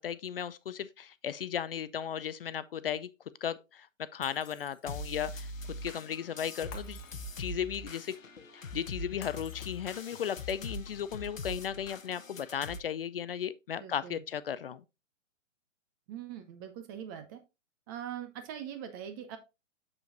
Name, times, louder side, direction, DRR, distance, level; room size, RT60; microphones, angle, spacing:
voice 1, 0.0-3.1 3.4-3.9 4.1-5.5 5.8-7.0 7.4-8.1 8.5-14.8, left 9 dB, 50° left, 0.4 m, -35 dB
Shatter, 4.2-5.2 6.7-7.7 9.2-10.2, left 7 dB, 35° left, 1.4 m, -53 dB
sound 1, 4.9-12.8, left 1 dB, 85° left, 0.9 m, -42 dB
voice 2, 13.8-14.2 16.1-17.4 17.9-19.4, right 9 dB, 15° right, 0.5 m, -42 dB
7.1 x 6.7 x 2.6 m
figure-of-eight pair, 120°, 39 cm